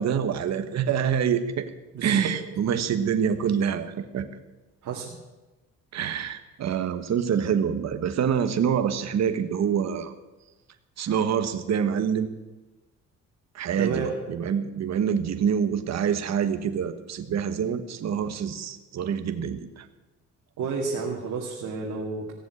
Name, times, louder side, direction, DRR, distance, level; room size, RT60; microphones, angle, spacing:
voice 1, 0.0-1.7 2.0-4.3 5.9-10.1 11.0-12.3 13.5-19.8, right 7 dB, 60° right, 9 dB, 1.3 m, -26 dB
voice 2, 1.9-2.3 4.8-5.1 13.8-14.1 20.6-22.3, right 5 dB, 75° right, -1 dB, 2.3 m, -31 dB
16.5 x 7.2 x 9.7 m, 1.1 s
cardioid pair, 90°, 30 cm